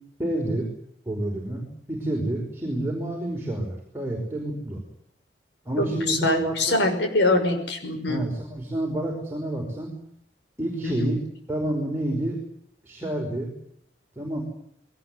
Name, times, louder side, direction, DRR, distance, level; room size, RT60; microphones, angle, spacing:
voice 1, 0.2-0.7 1.1-4.8 5.6-6.9 8.1-10.0 10.6-11.2 11.5-12.4 12.8-13.5 14.2-14.4, right 1 dB, 10° right, 0 dB, 5.2 m, -29 dB
voice 2, 6.1-8.2 10.8-11.1, left 2 dB, 70° left, 6 dB, 6.0 m, -23 dB
21.5 x 19.0 x 9.8 m, 0.69 s
head